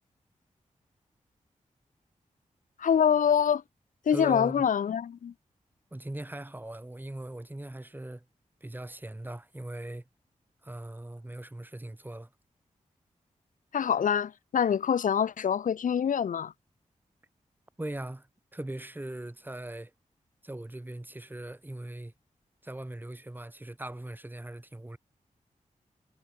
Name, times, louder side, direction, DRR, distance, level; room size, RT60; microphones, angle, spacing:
voice 1, 2.8-3.6 4.1-5.3 13.7-16.5, left 8 dB, 80° left, 0.7 m, -25 dB
voice 2, 4.1-4.7 5.9-8.2 8.6-10.0 10.6-12.3 17.8-18.3 18.5-19.9 20.4-22.1 22.6-25.0, right 1 dB, 15° right, 4.6 m, -40 dB
wide cardioid pair, 95°, 13 cm